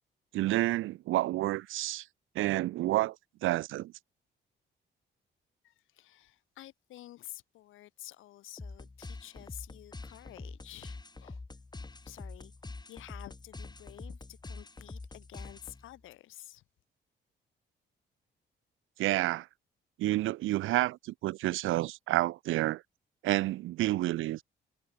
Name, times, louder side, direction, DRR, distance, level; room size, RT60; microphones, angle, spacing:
voice 1, 0.3-2.1 2.3-3.2 3.4-3.9 19.0-19.5 20.0-22.8 23.2-24.4, right 16 dB, 85° right, 0.9 m, -29 dB
voice 2, 5.6-11.4 12.0-12.5 12.9-16.6, left 14 dB, 85° left, 3.6 m, -50 dB
sound 1, 8.6-16.0, left 3 dB, 20° left, 5.7 m, -45 dB
cardioid pair, 90°, 20 cm